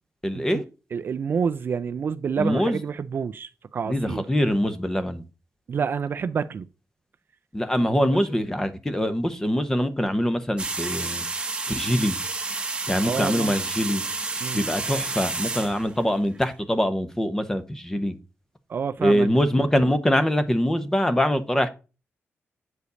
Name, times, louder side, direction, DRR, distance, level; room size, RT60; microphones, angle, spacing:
voice 1, 0.2-0.6 2.4-2.8 3.9-5.2 7.5-11.2 11.7-12.2 12.9-14.0 14.5-18.1 19.0-21.7, equal, 10° left, 1.0 m, -23 dB
voice 2, 0.9-4.3 5.7-6.7 7.8-8.0 13.1-13.5 14.4-14.6 18.7-19.3, right 6 dB, 50° right, 0.5 m, -28 dB
sound 1, 10.6-16.4, right 3 dB, 20° right, 1.1 m, -30 dB
8.2 x 5.1 x 3.9 m
wide cardioid pair, 145°, 5 cm